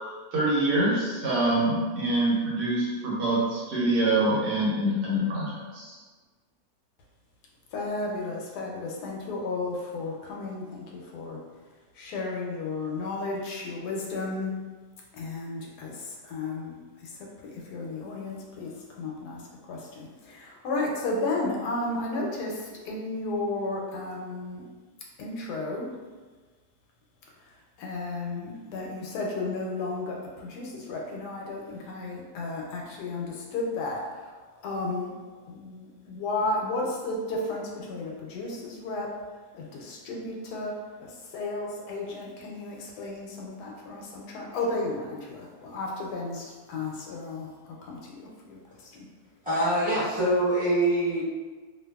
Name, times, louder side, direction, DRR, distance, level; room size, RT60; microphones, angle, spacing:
voice 1, 0.3-6.0, right 1 dB, 80° right, -6 dB, 1.3 m, -25 dB
voice 2, 7.7-11.4 11.9-14.5 15.1-17.2 17.4-19.4 19.7-24.6 25.2-25.9 27.8-35.1 35.5-39.1 39.5-40.7 41.0-47.5 47.8-49.1, left 2 dB, 80° left, -1 dB, 1.1 m, -33 dB
voice 3, 49.4-51.2, right 1 dB, 5° right, -13 dB, 1.0 m, -24 dB
2.7 x 2.4 x 2.3 m, 1.4 s
omnidirectional pair, 1.7 m